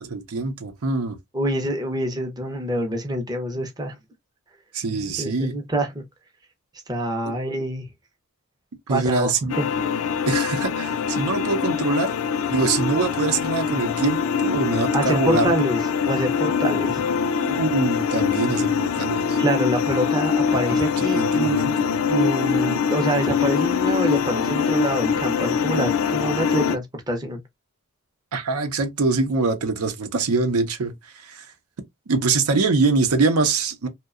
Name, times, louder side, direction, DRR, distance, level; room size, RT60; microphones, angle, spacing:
voice 1, 0.0-1.2 4.7-5.5 8.9-9.6 10.3-12.1 12.5-15.5 17.4-19.4 21.2-21.9 28.3-30.9 31.3-31.5 32.1-33.9, right 3 dB, 85° right, 0.6 m, -24 dB
voice 2, 1.3-3.9 5.2-5.9 6.9-7.8 8.9-9.6 14.9-17.0 19.4-21.6 22.1-27.4, right 1 dB, 20° right, 0.5 m, -26 dB
sound 1, 9.5-26.8, left 6 dB, 75° left, 0.3 m, -23 dB
2.7 x 2.1 x 2.3 m
head